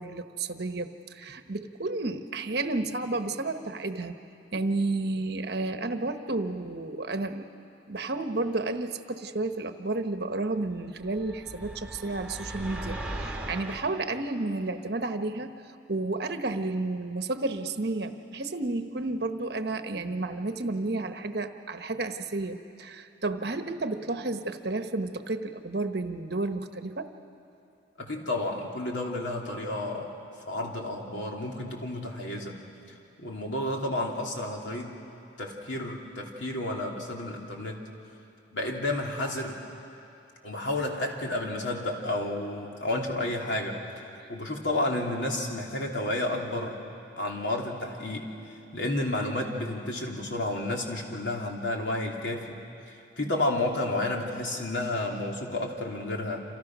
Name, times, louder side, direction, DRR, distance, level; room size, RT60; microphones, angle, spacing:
voice 1, 0.0-4.1 4.5-7.5 7.9-15.6 15.9-27.1 53.2-53.3, right 2 dB, 55° right, 7 dB, 1.1 m, -31 dB
sound 1, 11.0-13.9, right 1 dB, 5° right, 1.9 m, -38 dB
voice 2, 28.0-30.1 30.5-32.6 33.2-35.0 35.4-37.8 38.5-39.6 40.4-44.0 44.3-46.8 47.1-52.5 52.9-56.4, left 1 dB, 75° left, 0 dB, 3.2 m, -31 dB
29.0 x 27.0 x 6.2 m, 2.7 s
head